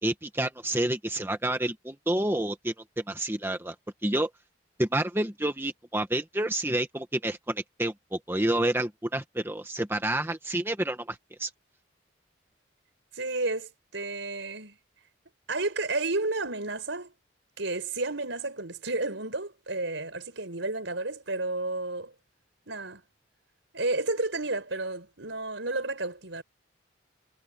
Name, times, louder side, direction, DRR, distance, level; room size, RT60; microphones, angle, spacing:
voice 1, 0.0-2.7 3.1-3.7 4.0-4.3 4.8-11.5, right 1 dB, 10° right, 1.1 m, -29 dB
voice 2, 13.1-14.8 15.5-17.1 17.6-22.1 22.7-23.0 23.7-26.4, right 2 dB, 70° right, 5.0 m, -31 dB
head